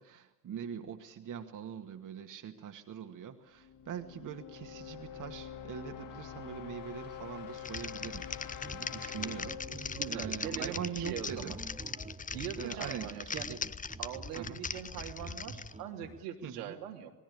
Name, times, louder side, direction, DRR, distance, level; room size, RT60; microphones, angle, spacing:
voice 1, 0.0-11.6 12.6-13.6 14.3-14.6 16.4-16.7, right 8 dB, 40° right, 6 dB, 2.1 m, -43 dB
sound 1, 3.6-11.4, left 8 dB, 45° left, 3.4 m, -46 dB
Typing, 7.5-15.7, left 5 dB, 15° left, 0.8 m, -40 dB
sound 2, 8.5-16.2, right 3 dB, 15° right, 1.6 m, -49 dB
voice 2, 9.9-11.6 12.3-13.6 14.0-17.1, right 9 dB, 70° right, 2 dB, 3.0 m, -42 dB
27.0 x 20.0 x 8.6 m, 1.0 s
figure-of-eight pair, 55°, 46 cm